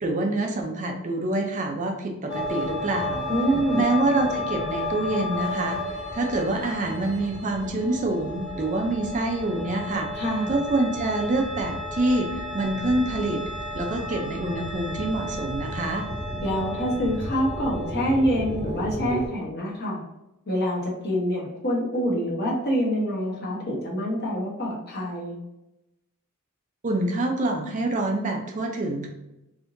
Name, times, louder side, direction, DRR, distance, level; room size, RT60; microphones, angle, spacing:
voice 1, 0.0-3.3 3.7-5.8 6.1-10.1 10.5-12.3 12.5-13.4 13.7-16.1 26.8-29.1, right 2 dB, 35° right, 2 dB, 0.5 m, -26 dB
sound 1, 2.3-19.3, left 1 dB, 15° left, 0.8 m, -32 dB
voice 2, 3.3-3.8 10.1-10.6 16.4-20.0 20.5-25.4, equal, 50° left, -3 dB, 1.0 m, -26 dB
3.6 x 2.7 x 2.5 m, 0.92 s
head